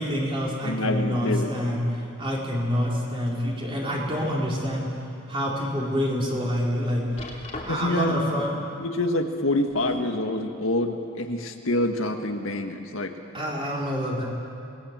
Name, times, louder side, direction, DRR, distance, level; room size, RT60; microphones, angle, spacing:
voice 1, 0.0-1.8 2.2-4.9 5.3-7.0 7.6-8.5 13.3-14.2, equal, 25° right, -3 dB, 4.3 m, -27 dB
voice 2, 0.6-1.5 7.7-8.2 8.8-13.1, left 1 dB, 70° left, 4 dB, 1.7 m, -26 dB
sound 1, 3.3-4.1 4.6-4.7 5.3-5.4 7.2-8.1 9.4-10.2 11.1-11.2, left 2 dB, 30° left, 3.0 m, -41 dB
27.0 x 20.0 x 7.4 m, 2.5 s
head